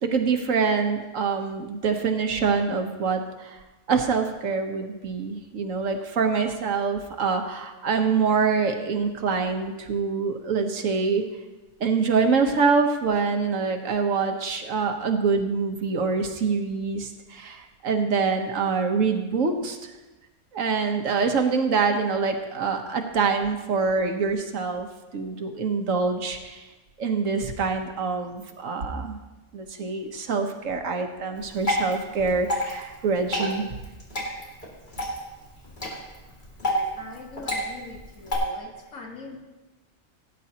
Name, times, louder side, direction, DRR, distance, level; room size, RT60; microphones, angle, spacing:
voice 1, 0.0-3.6 3.9-11.2 11.8-19.8 20.5-24.9 25.1-26.6 27.0-29.2 29.5-33.7, right 5 dB, 90° right, 4 dB, 1.5 m, -25 dB
Water / Drip, 31.3-38.3, equal, 40° left, 2.6 m, -30 dB
voice 2, 36.6-39.4, left 3 dB, 80° left, 1 dB, 1.9 m, -42 dB
17.5 x 9.5 x 2.9 m, 1.1 s
omnidirectional pair, 1.3 m